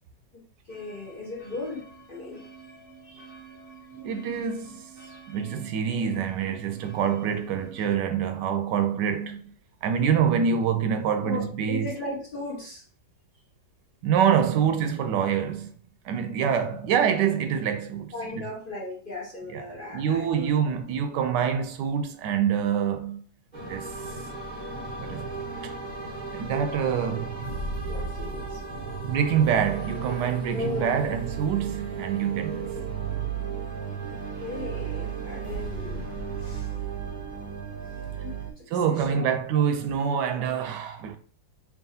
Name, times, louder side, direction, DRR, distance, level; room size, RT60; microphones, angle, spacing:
voice 1, 0.3-2.4 3.0-3.3 11.2-12.8 18.1-20.5 27.9-28.6 30.5-31.0 32.5-32.7 34.1-36.1 36.4-36.7 37.8-39.2, left 2 dB, 45° left, 0.7 m, -37 dB
sound 1, 0.7-7.9, right 5 dB, 15° right, 0.8 m, -48 dB
voice 2, 4.0-4.9 5.3-9.5 9.8-11.9 14.0-15.7 16.0-18.1 19.5-19.6 19.9-23.2 23.6-24.1 25.0-25.3 25.6-25.7 26.3-27.5 29.0-32.7 38.7-41.2, right 8 dB, 75° right, 1.1 m, -26 dB
sound 2, 23.5-38.5, right 5 dB, 50° right, 0.5 m, -34 dB
4.7 x 2.9 x 2.7 m
omnidirectional pair, 1.9 m